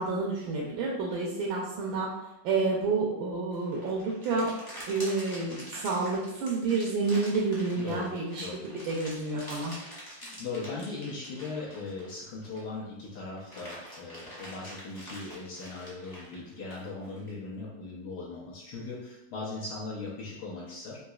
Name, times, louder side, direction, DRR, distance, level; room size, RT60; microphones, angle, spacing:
voice 1, 0.0-2.1 2.4-4.5 4.9-8.4 8.9-9.8, right 3 dB, 80° right, -4 dB, 1.4 m, -29 dB
sound 1, 3.5-12.8 13.2-17.3, equal, 20° left, 0.6 m, -46 dB
voice 2, 7.7-8.1 8.4-8.6 9.3-9.6 10.2-21.0, left 3 dB, 70° left, -5 dB, 1.1 m, -39 dB
4.0 x 2.7 x 2.3 m, 0.89 s
omnidirectional pair, 2.1 m